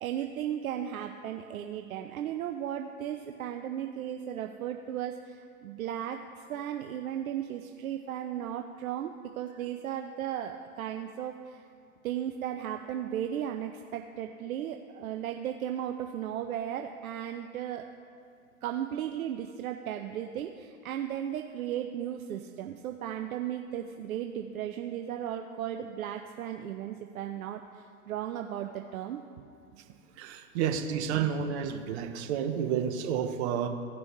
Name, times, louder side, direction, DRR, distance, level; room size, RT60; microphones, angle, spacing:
voice 1, 0.0-11.6 12.0-17.8 18.6-29.2 31.1-31.3, right 10 dB, 70° right, 4 dB, 0.7 m, -35 dB
voice 2, 30.2-33.7, right 8 dB, 50° right, 5 dB, 1.1 m, -30 dB
16.5 x 6.1 x 3.1 m, 2.3 s
hypercardioid pair, 110°, 44 cm